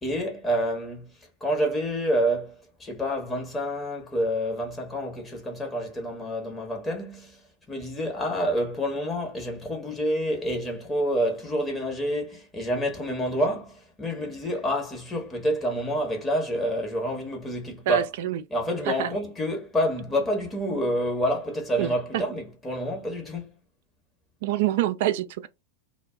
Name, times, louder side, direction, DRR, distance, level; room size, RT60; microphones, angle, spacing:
voice 1, 0.0-18.0 18.5-23.5, equal, 15° left, 0.9 m, -28 dB
voice 2, 17.9-18.4 18.9-19.1 21.8-22.2 24.4-25.5, right 11 dB, 50° right, 0.3 m, -26 dB
2.1 x 2.0 x 3.6 m
figure-of-eight pair, 90°, 0 cm